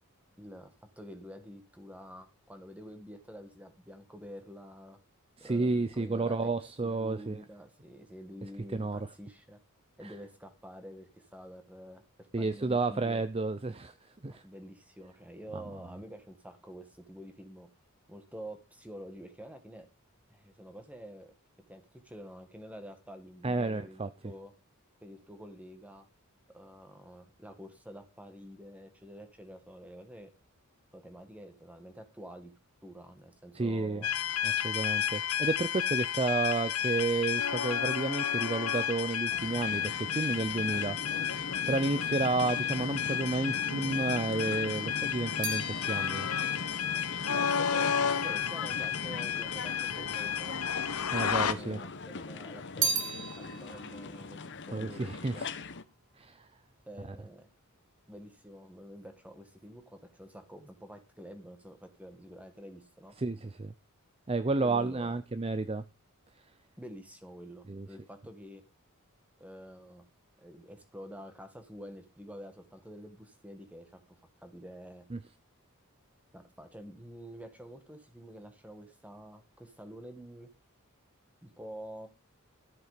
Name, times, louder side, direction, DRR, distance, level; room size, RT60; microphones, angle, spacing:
voice 1, 0.4-5.0 5.4-6.5 6.8-9.6 10.0-13.3 14.3-17.7 18.1-19.9 20.3-21.3 21.7-24.5 25.0-26.1 26.5-30.3 30.9-32.5 32.8-34.1 47.3-50.6 51.6-55.5 56.9-57.5 58.1-63.2 64.6-65.1 66.8-68.6 69.4-70.1 70.4-75.1 76.3-80.5 81.4-82.1, equal, 5° right, 1.9 m, -48 dB
voice 2, 5.4-7.4 8.7-9.0 10.0-10.1 12.3-13.9 14.2-14.4 15.5-15.6 23.4-24.1 33.5-34.0 34.4-41.3 41.7-46.3 51.1-51.8 54.7-55.5 56.2-56.5 57.1-57.2 63.2-63.7 64.3-65.8 67.7-67.9 75.1-75.2, right 3 dB, 25° right, 0.6 m, -31 dB
sound 1, 34.0-51.5, left 9 dB, 85° left, 1.0 m, -32 dB
sound 2, 39.3-55.8, left 3 dB, 55° left, 1.0 m, -41 dB
sound 3, 44.4-48.9 49.7-50.5 50.7-51.9 52.2-55.7 56.0-56.5, right 5 dB, 60° right, 2.9 m, -38 dB
13.5 x 7.7 x 5.1 m
head